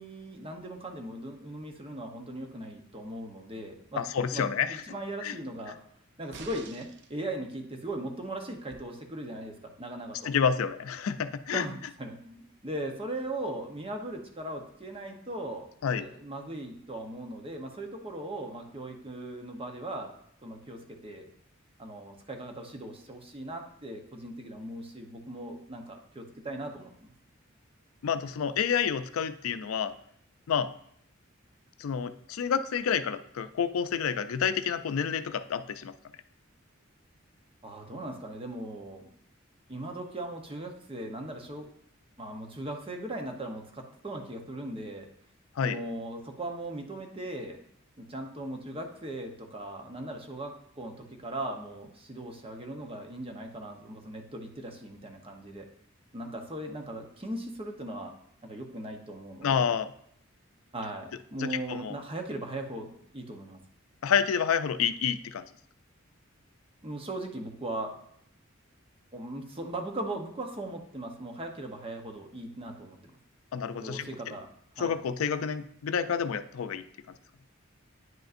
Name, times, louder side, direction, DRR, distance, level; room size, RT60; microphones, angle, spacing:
voice 1, 0.0-4.0 4.3-5.8 6.2-10.3 11.5-15.7 16.0-20.1 20.4-21.3 21.8-27.1 37.6-39.1 39.7-41.7 42.2-45.1 45.6-47.6 48.0-55.7 56.1-58.2 58.4-59.6 60.7-63.6 66.8-68.0 69.1-73.1 73.8-74.5 74.8-74.9, right 1 dB, 25° right, 3 dB, 0.8 m, -39 dB
voice 2, 4.0-4.8 5.2-5.4 10.2-11.7 15.8-16.1 28.0-29.9 30.5-30.7 31.8-35.9 45.6-45.8 59.4-59.9 61.4-62.0 64.0-65.5 73.5-74.1 74.8-76.8, left 7 dB, 80° left, 11 dB, 0.4 m, -29 dB
sound 1, 6.3-7.1 8.7-8.8, right 5 dB, 55° right, 0.5 m, -47 dB
9.3 x 5.2 x 2.5 m, 0.68 s
head